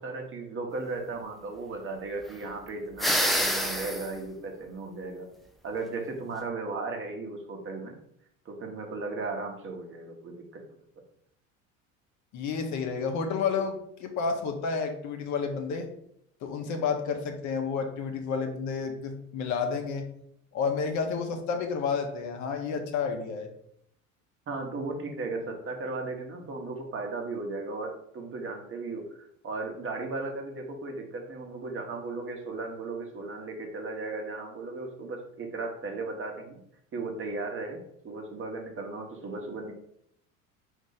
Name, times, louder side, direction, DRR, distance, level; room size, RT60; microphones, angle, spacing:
voice 1, 0.0-5.3 5.6-7.9 8.4-10.6 24.5-36.6 36.9-39.7, right 3 dB, 30° right, 2 dB, 1.1 m, -36 dB
sound 1, 3.0-4.1, equal, ahead, 0.4 m, -26 dB
voice 2, 12.3-15.9 16.4-20.1 20.5-23.5, left 5 dB, 45° left, 4 dB, 0.8 m, -30 dB
4.9 x 2.7 x 3.9 m, 0.70 s
figure-of-eight pair, 65°, 40 cm